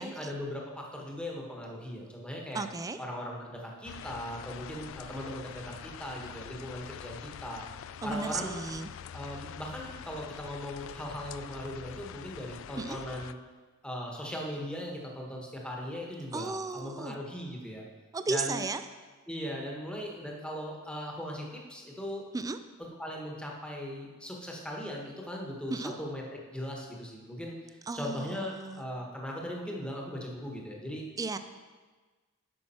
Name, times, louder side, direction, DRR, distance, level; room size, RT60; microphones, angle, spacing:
voice 1, 0.0-2.6 3.0-7.6 8.0-8.6 9.1-13.4 13.8-17.8 18.3-18.6 19.3-22.2 23.0-26.2 26.5-31.0, equal, 5° left, -1 dB, 1.2 m, -39 dB
voice 2, 2.5-3.0 8.0-8.9 12.8-13.0 16.3-17.2 18.1-18.8 22.3-22.6 25.7-25.9 27.9-28.8 31.2-31.4, right 3 dB, 15° right, 10 dB, 0.3 m, -34 dB
sound 1, 3.8-13.3, left 9 dB, 70° left, 0.3 m, -45 dB
9.8 x 6.1 x 4.3 m, 1.4 s
head